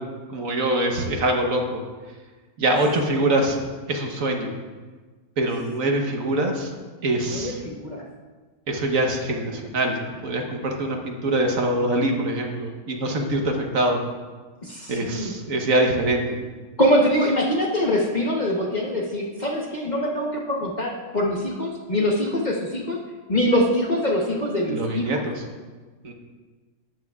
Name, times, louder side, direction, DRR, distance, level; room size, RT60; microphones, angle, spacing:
voice 1, 0.3-1.8 2.6-4.5 5.4-6.7 7.0-7.6 8.7-10.0 10.2-14.0 14.9-16.4 24.6-25.4 26.0-26.1, right 1 dB, 60° right, 2 dB, 1.4 m, -24 dB
voice 2, 7.3-8.0 14.6-15.3 16.8-23.0 23.3-25.2, equal, 35° left, -2 dB, 1.0 m, -23 dB
13.0 x 9.4 x 2.4 m, 1.4 s
omnidirectional pair, 1.6 m